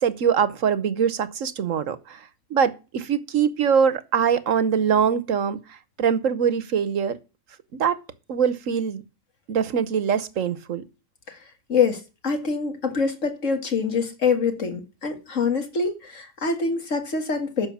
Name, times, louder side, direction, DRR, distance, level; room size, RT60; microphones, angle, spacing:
voice 1, 0.0-2.2 2.5-7.2 7.7-8.0 8.3-9.0 9.5-10.8, right 7 dB, 70° right, 1.3 m, -23 dB
voice 2, 11.7-17.7, left 5 dB, 65° left, 2.2 m, -25 dB
10.0 x 6.3 x 7.3 m
omnidirectional pair, 1.4 m